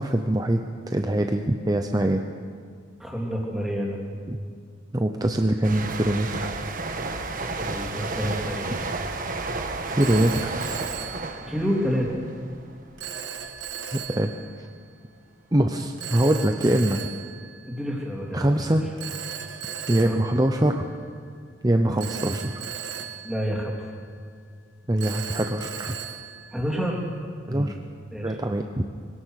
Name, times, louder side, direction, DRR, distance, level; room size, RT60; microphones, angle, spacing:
voice 1, 0.0-2.2 4.3-4.4 4.9-6.5 9.9-10.5 13.9-14.3 14.6-14.7 15.5-17.0 18.3-18.8 19.9-20.9 21.6-22.6 24.9-26.0 27.5-27.8 28.2-28.8, right 1 dB, 20° right, 5 dB, 0.7 m, -23 dB
voice 2, 3.0-4.0 7.6-8.8 11.5-12.1 17.6-18.8 20.0-20.2 21.8-22.0 23.2-23.8 26.5-27.0 27.5-27.8 28.1-28.4, equal, ahead, -2 dB, 3.3 m, -29 dB
sound 1, 5.6-13.1 13.4-13.7, right 3 dB, 45° right, 1.4 m, -32 dB
Telephone, 10.0-12.0 13.0-14.7 16.0-18.2 19.0-21.3 22.0-24.3 25.0-27.2, right 8 dB, 60° right, 1.7 m, -38 dB
23.5 x 17.5 x 6.5 m, 2.1 s
head